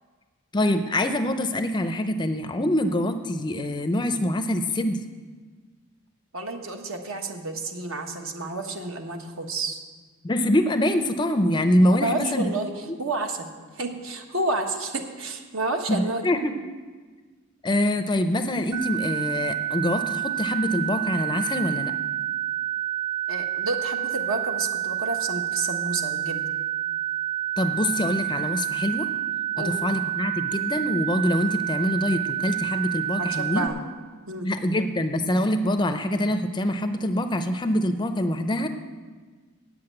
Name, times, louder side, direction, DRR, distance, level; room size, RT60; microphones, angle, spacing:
voice 1, 0.5-5.0 10.2-12.5 15.9-16.6 17.6-21.9 27.6-29.1 29.6-33.6 34.4-38.7, left 1 dB, 20° left, 8 dB, 0.5 m, -24 dB
voice 2, 6.3-9.8 11.9-12.7 13.0-16.2 23.3-26.4 29.5-29.7 33.2-33.8 34.3-34.5, right 2 dB, 70° right, 4 dB, 1.2 m, -30 dB
sound 1, 18.7-33.7, right 12 dB, 90° right, 0.7 m, -29 dB
8.3 x 7.7 x 8.7 m, 1.4 s
head